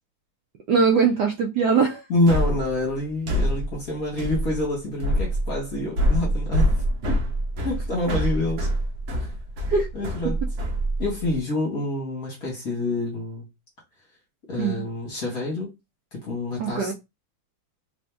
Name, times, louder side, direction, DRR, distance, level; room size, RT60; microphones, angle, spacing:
voice 1, 0.7-2.0 9.7-9.9 14.6-14.8 16.6-16.9, right 5 dB, 75° right, 1.0 m, -21 dB
voice 2, 2.1-6.7 7.1-7.2 7.6-8.7 9.1-9.3 9.9-10.4 11.0-13.4 14.5-15.7 16.1-16.9, left 2 dB, 50° left, 1.5 m, -27 dB
sound 1, 2.3-11.4, equal, 55° right, 1.3 m, -25 dB
3.5 x 2.7 x 3.3 m
omnidirectional pair, 2.3 m